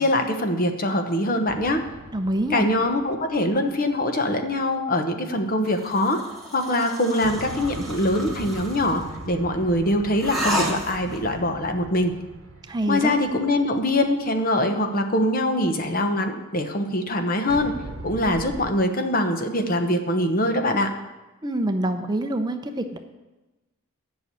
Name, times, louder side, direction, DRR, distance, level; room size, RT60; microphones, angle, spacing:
voice 1, 0.0-1.8 2.5-6.2 6.5-12.1 12.9-17.7 18.0-20.9, left 1 dB, 45° left, 6 dB, 1.1 m, -23 dB
sound 1, 1.5-4.0 7.2-14.4 17.5-18.7, right 2 dB, 80° right, 1.0 m, -40 dB
voice 2, 2.1-2.7 12.7-13.1 21.4-23.0, right 1 dB, 20° right, 7 dB, 0.6 m, -26 dB
sound 2, 5.7-9.1 10.2-11.3, equal, ahead, 2.3 m, -31 dB
11.0 x 6.2 x 8.4 m, 1.1 s
head